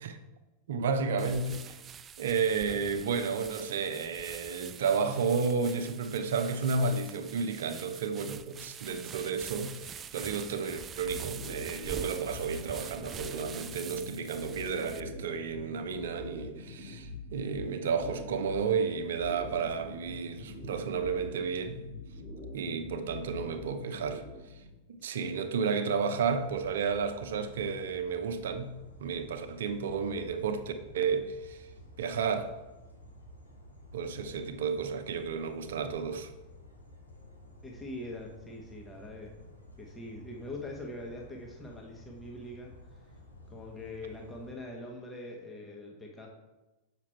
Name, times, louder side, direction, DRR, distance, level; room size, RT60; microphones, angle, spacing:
voice 1, 0.7-1.8 2.2-21.8 22.5-24.2 25.0-31.7 32.0-32.5 33.9-36.3, right 5 dB, 60° right, 9 dB, 0.8 m, -32 dB
sound 1, 1.2-15.0, right 7 dB, 25° right, 0.3 m, -45 dB
sound 2, 11.0-24.8, left 2 dB, 30° left, 2.3 m, -44 dB
sound 3, 26.2-44.5, left 1 dB, 85° left, 1.5 m, -52 dB
voice 2, 37.6-39.4 39.8-43.0 43.5-46.3, left 1 dB, 10° left, -1 dB, 1.3 m, -43 dB
7.3 x 6.0 x 4.5 m, 1.1 s
figure-of-eight pair, 90°, 0 cm